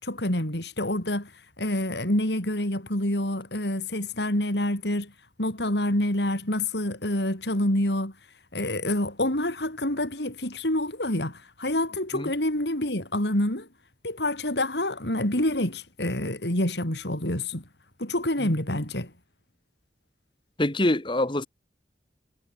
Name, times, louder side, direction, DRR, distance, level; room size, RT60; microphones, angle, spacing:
voice 1, 0.0-1.3 1.6-5.1 5.4-8.1 8.5-13.7 14.0-17.6 18.0-19.1, left 1 dB, 75° left, 5.8 m, -27 dB
voice 2, 20.6-21.5, left 1 dB, 30° left, 1.5 m, -25 dB
head